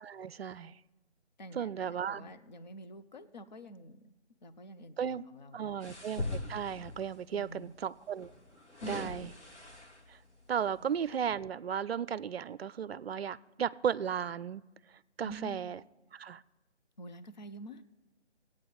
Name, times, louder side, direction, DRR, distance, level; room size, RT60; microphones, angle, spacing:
voice 1, 0.0-0.7 1.5-2.3 5.0-5.3 5.5-8.3 8.9-9.3 10.1-10.2 10.5-14.6 15.2-15.8 16.1-16.4, right 8 dB, 60° right, 20 dB, 0.5 m, -35 dB
voice 2, 1.4-4.1 4.4-6.0 7.3-7.8 8.8-9.4 10.8-10.9 15.2-15.6 17.0-17.8, equal, 40° left, 10 dB, 0.6 m, -47 dB
sound 1, 5.8-7.1 8.2-10.2 10.8-10.9, left 2 dB, 85° left, 2.2 m, -41 dB
18.5 x 8.6 x 3.9 m, 1.2 s
figure-of-eight pair, 155°, 34 cm